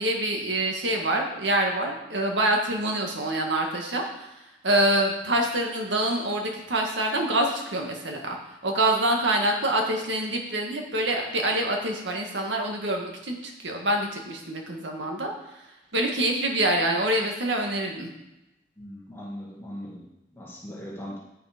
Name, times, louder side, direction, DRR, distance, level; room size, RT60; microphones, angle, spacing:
voice 1, 0.0-4.3 4.6-8.4 8.6-15.3 15.9-18.1, right 1 dB, 85° right, 2 dB, 1.7 m, -26 dB
voice 2, 18.8-21.2, equal, 15° left, -5 dB, 1.9 m, -39 dB
9.0 x 6.9 x 5.1 m, 0.96 s
head